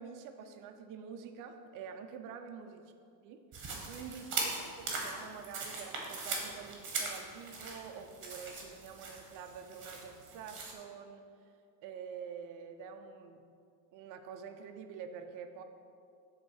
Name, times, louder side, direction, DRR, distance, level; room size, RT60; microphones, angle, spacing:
voice 1, 0.0-2.8 3.2-3.4 3.9-11.5 11.8-13.4 13.9-15.6, right 6 dB, 45° right, 6 dB, 0.5 m, -47 dB
sound 1, 3.5-10.7, right 3 dB, 25° right, 1.3 m, -40 dB
8.0 x 3.7 x 6.3 m, 2.3 s
cardioid pair, 165°, 47 cm